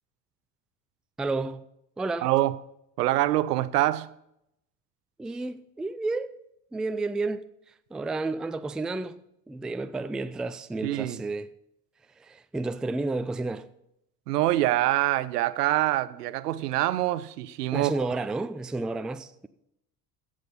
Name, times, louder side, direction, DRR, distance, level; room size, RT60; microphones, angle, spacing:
voice 1, 1.2-1.6 2.0-2.3 5.2-6.4 6.7-11.5 12.2-13.7 17.7-19.5, right 3 dB, ahead, 0.4 m, -31 dB
voice 2, 2.2-2.5 3.0-4.1 10.8-11.2 14.3-17.9, right 15 dB, 75° right, 0.7 m, -25 dB
15.5 x 6.5 x 5.4 m
hypercardioid pair, 65°, 47 cm